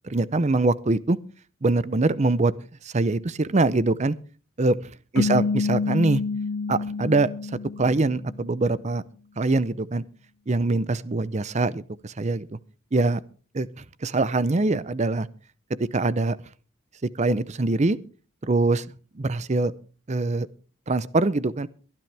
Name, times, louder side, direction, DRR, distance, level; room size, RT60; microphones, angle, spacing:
voice 1, 0.0-1.2 1.6-2.5 2.8-4.1 4.6-4.8 5.1-6.2 6.7-7.3 7.8-9.0 9.4-10.0 10.5-12.5 12.9-13.2 13.5-15.3 15.7-16.4 17.2-18.0 18.5-18.8 19.2-19.7 20.1-20.5 20.9-21.7, right 2 dB, 35° right, 18 dB, 0.6 m, -23 dB
sound 1, 5.2-8.5, left 4 dB, 75° left, 0.7 m, -28 dB
22.5 x 10.5 x 3.4 m, 0.37 s
head